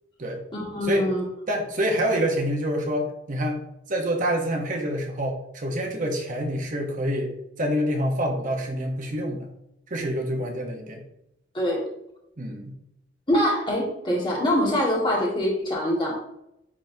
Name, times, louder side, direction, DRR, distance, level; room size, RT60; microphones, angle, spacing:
voice 1, 0.5-1.2 11.5-11.8 13.3-16.2, equal, 25° left, -3 dB, 1.7 m, -24 dB
voice 2, 1.5-3.6 3.9-7.3 7.6-9.5 9.9-11.0 12.4-12.7, equal, 45° right, 1 dB, 1.0 m, -27 dB
9.8 x 3.6 x 2.7 m, 0.82 s
head